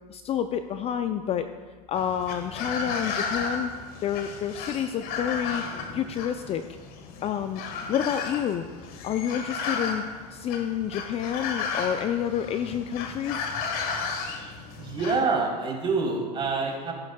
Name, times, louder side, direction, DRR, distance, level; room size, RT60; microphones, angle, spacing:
voice 1, 0.1-1.5 1.9-3.7 4.0-5.6 5.9-6.6 7.2-7.6 7.9-8.6 9.0-10.0 10.3-13.5, left 9 dB, 30° left, 10 dB, 0.4 m, -29 dB
sound 1, 2.0-15.2, left 4 dB, 45° left, 1.4 m, -34 dB
voice 2, 14.8-16.9, right 4 dB, 25° right, -2 dB, 3.3 m, -26 dB
14.5 x 11.0 x 2.3 m, 1.5 s
hypercardioid pair, 90°, 21 cm